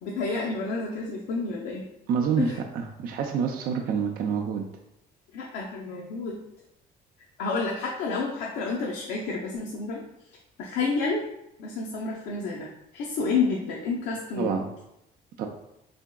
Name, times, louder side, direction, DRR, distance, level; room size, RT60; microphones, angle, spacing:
voice 1, 0.0-1.9 2.4-2.6 5.3-6.4 7.4-10.0 10.6-11.2 11.6-14.6, left 4 dB, 85° left, -2 dB, 0.5 m, -30 dB
voice 2, 2.1-4.7 14.4-14.7 15.4-15.5, right 6 dB, 60° right, 3 dB, 0.4 m, -27 dB
3.7 x 3.4 x 2.2 m, 0.84 s
cardioid pair, 110°, 17 cm